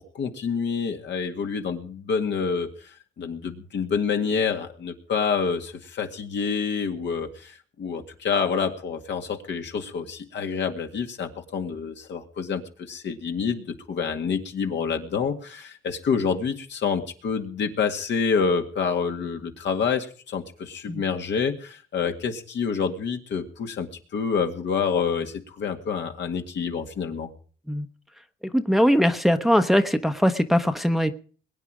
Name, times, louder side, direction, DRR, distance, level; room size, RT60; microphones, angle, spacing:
voice 1, 0.1-2.9 3.2-27.3, left 6 dB, 65° left, 4 dB, 2.0 m, -27 dB
voice 2, 28.4-31.1, equal, ahead, 8 dB, 0.9 m, -21 dB
21.5 x 9.1 x 5.0 m, 0.43 s
cardioid pair, 90°, 20 cm